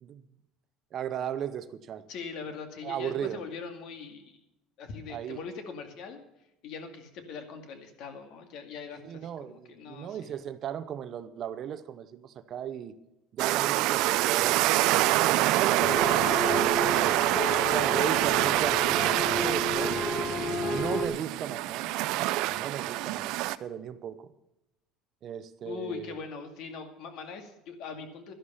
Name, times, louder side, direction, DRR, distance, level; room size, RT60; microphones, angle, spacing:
voice 1, 0.9-2.1 2.8-3.4 5.1-5.4 9.0-13.0 13.3-14.6 15.2-17.3 17.7-20.1 20.7-21.9 22.4-24.3 25.2-26.2, right 9 dB, 40° right, 13 dB, 0.8 m, -36 dB
voice 2, 2.1-4.4 4.8-6.2 6.6-10.3 25.6-28.3, left 5 dB, 60° left, 7 dB, 2.2 m, -41 dB
sound 1, 13.4-23.6, right 17 dB, 65° right, 0.5 m, -26 dB
sound 2, 15.8-21.1, left 2 dB, 20° left, 1.3 m, -32 dB
12.0 x 11.5 x 5.7 m, 0.89 s
cardioid pair, 145°, 0 cm